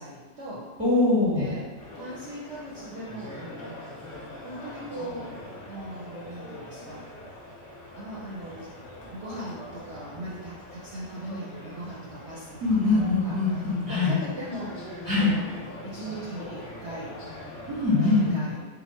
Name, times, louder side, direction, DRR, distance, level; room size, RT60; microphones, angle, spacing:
voice 1, 0.0-0.7 1.3-1.6 1.9-3.8 4.4-5.3 5.7-7.1 8.0-8.7 9.1-13.4 13.9-14.8 15.0-17.2 18.0-18.7, right 1 dB, 60° right, -6 dB, 0.8 m, -39 dB
voice 2, 0.8-1.5 12.6-14.1 15.1-15.3 17.7-18.4, left 3 dB, 15° left, -9 dB, 1.2 m, -23 dB
sound 1, 1.8-18.3, left 1 dB, 55° left, 1.0 m, -43 dB
3.8 x 2.2 x 4.3 m, 1.3 s
omnidirectional pair, 1.6 m